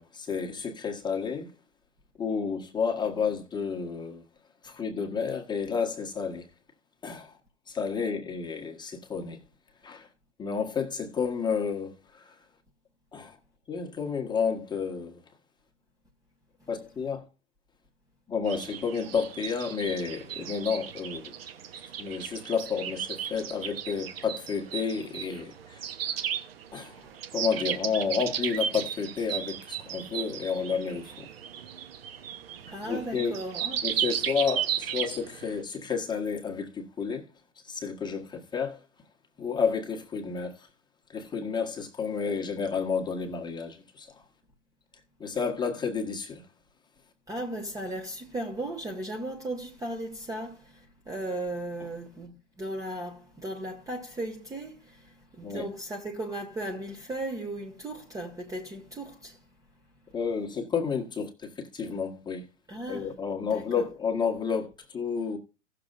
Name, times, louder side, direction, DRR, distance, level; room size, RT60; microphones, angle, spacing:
voice 1, 0.0-1.5 2.2-4.2 4.6-6.5 7.0-7.4 7.7-9.4 9.8-10.1 10.4-12.4 13.1-13.4 13.7-15.2 16.7-17.3 18.3-21.4 21.8-25.9 26.7-31.3 32.8-33.4 33.8-37.3 37.6-38.8 39.4-40.7 41.1-44.2 45.2-46.4 55.4-55.7 60.1-62.5 62.9-65.4, left 6 dB, 10° left, 1.5 m, -31 dB
sound 1, 18.5-35.6, right 9 dB, 55° right, 1.1 m, -35 dB
voice 2, 32.7-33.8 47.3-50.6 51.1-54.7 55.4-59.4 62.7-63.1 63.5-63.6, right 1 dB, 10° right, 1.1 m, -36 dB
17.0 x 6.7 x 2.5 m
figure-of-eight pair, 100°, 37 cm